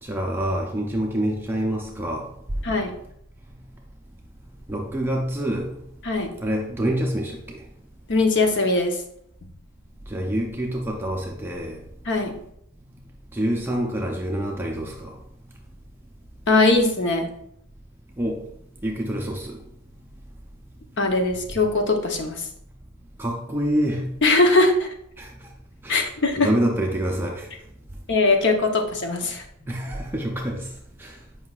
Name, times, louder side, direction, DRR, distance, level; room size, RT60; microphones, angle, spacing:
voice 1, 0.0-2.3 4.7-5.7 6.4-7.6 10.1-11.8 13.3-15.1 18.2-18.4 18.8-19.6 23.2-24.1 25.2-25.3 25.8-26.0 26.4-27.5 29.6-30.6 31.0-31.1, right 1 dB, 10° right, 0 dB, 0.5 m, -26 dB
voice 2, 8.1-9.0 12.1-12.4 16.5-17.3 21.0-22.5 24.2-24.9 25.9-26.5 28.1-29.4, left 2 dB, 55° left, 4 dB, 0.8 m, -20 dB
7.8 x 5.4 x 2.4 m, 0.73 s
head